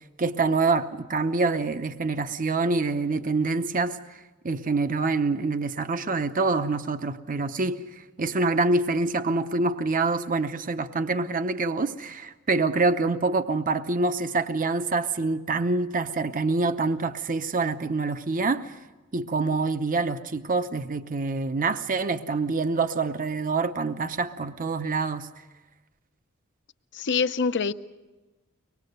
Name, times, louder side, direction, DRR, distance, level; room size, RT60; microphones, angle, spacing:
voice 1, 0.2-18.8 19.1-25.3, right 3 dB, 40° right, 9 dB, 0.7 m, -26 dB
voice 2, 26.9-27.7, left 5 dB, 55° left, 11 dB, 0.7 m, -25 dB
24.0 x 20.0 x 6.7 m, 1.1 s
head